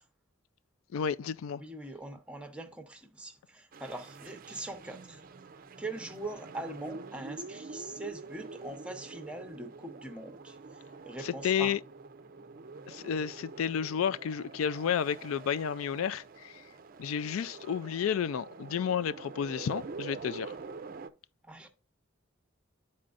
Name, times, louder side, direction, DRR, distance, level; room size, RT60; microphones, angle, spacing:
voice 1, 0.9-1.6 11.2-11.8 12.9-16.6 17.0-20.5, left 8 dB, 85° left, 0.3 m, -31 dB
voice 2, 1.6-5.2 5.8-11.7 21.4-21.7, right 2 dB, 5° right, 0.8 m, -42 dB
sound 1, 3.7-21.1, right 4 dB, 45° right, 0.4 m, -46 dB
11.5 x 4.3 x 2.5 m
head